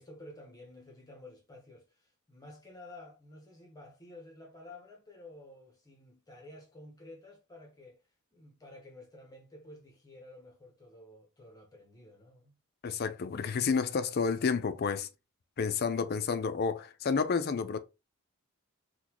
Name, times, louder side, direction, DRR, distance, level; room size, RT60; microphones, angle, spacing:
voice 1, 0.0-8.0 8.3-12.6, left 1 dB, 15° left, 0.9 m, -52 dB
voice 2, 12.8-15.1 15.6-17.8, left 5 dB, 45° left, 0.4 m, -30 dB
3.9 x 2.2 x 2.9 m
head